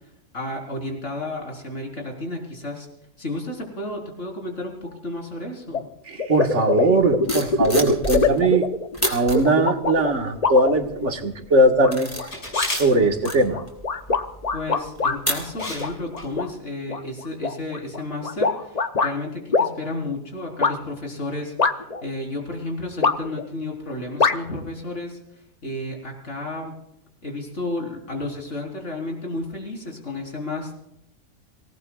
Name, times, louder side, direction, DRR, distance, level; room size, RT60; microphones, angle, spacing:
voice 1, 0.3-2.9 3.2-5.9 14.5-21.5 22.0-25.2 25.6-26.7 27.2-30.7, left 2 dB, 60° left, 1 dB, 4.6 m, -32 dB
sound 1, 5.7-5.8 6.2-11.3 11.8-12.3 12.5-12.7 13.2-15.2 15.6-16.5 16.9-19.1 19.5-19.7 20.6-20.7 21.6-22.0 23.0-23.5 24.2-24.4, left 4 dB, 35° left, 0.8 m, -23 dB
voice 2, 6.1-8.7 9.1-12.3 12.7-13.6, right 2 dB, 60° right, 4 dB, 1.9 m, -20 dB
sound 2, 7.0-8.6 8.9-9.4 10.0-10.4 10.8-11.2 11.6-15.9 16.2-16.5, equal, 10° left, 4.4 m, -31 dB
Camera, 12.3-12.8 14.9-15.1 15.6-15.9 16.2-16.3, left 1 dB, 85° left, 6.5 m, -30 dB
26.5 x 18.0 x 2.4 m, 0.78 s
omnidirectional pair, 1.4 m